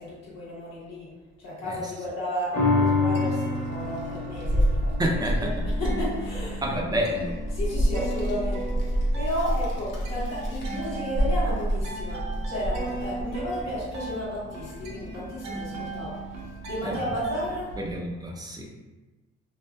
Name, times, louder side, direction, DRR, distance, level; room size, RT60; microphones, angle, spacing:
voice 1, 0.0-4.9 5.3-6.6 7.5-16.2 16.7-17.8, left 1 dB, 60° left, -7 dB, 1.2 m, -33 dB
sound 1, 2.5-9.2 9.7-9.8, left 3 dB, 25° left, 0.8 m, -30 dB
sound 2, 3.1-4.4 4.7-17.5, right 3 dB, 65° right, 0.7 m, -39 dB
Child speech kid speaking, 3.5-18.0, right 1 dB, 85° left, 0.7 m, -30 dB
voice 2, 5.0-5.5 6.6-7.3 16.8-17.0 17.8-18.7, equal, 15° right, -1 dB, 0.4 m, -28 dB
2.7 x 2.7 x 2.2 m, 1.2 s
cardioid pair, 90°, 30 cm